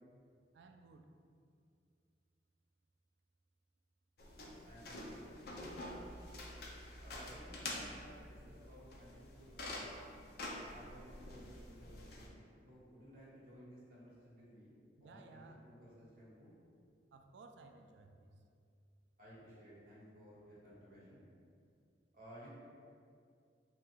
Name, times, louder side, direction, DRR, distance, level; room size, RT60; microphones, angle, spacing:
voice 1, 0.5-1.1 15.0-15.6 17.1-18.3, right 3 dB, 75° right, 5 dB, 0.3 m, -58 dB
sound 1, 4.2-12.3, left 1 dB, 55° left, 0.5 m, -47 dB
voice 2, 4.7-5.6 7.0-10.2 10.6-16.5 19.2-21.3 22.1-22.5, equal, 50° right, -8 dB, 1.1 m, -57 dB
3.5 x 2.3 x 4.3 m, 2.3 s
head